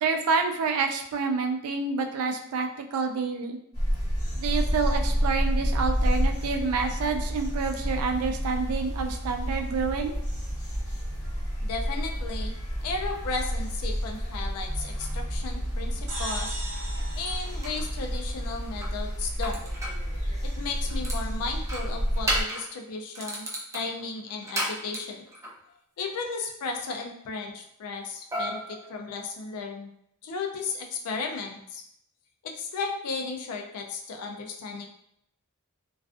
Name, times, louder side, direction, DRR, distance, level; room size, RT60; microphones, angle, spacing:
voice 1, 0.0-3.6 4.4-10.2, right 4 dB, 75° right, 4 dB, 0.3 m, -28 dB
sound 1, 3.7-22.4, equal, 20° left, 1.3 m, -30 dB
voice 2, 11.6-12.5 12.8-16.6 17.1-19.6 20.4-23.5 23.7-25.2 26.0-29.9 30.2-31.8 32.4-34.9, left 4 dB, 80° left, 2 dB, 0.4 m, -34 dB
sound 2, 14.9-15.1 16.7-16.8 17.3-17.9 18.8-20.0 20.6-21.2 21.6-22.7 23.1-25.6 28.3-29.6, right 1 dB, 15° right, 0.4 m, -34 dB
sound 3, 16.1-18.7, right 1 dB, 55° right, 0.8 m, -38 dB
2.3 x 2.3 x 2.4 m, 0.74 s
head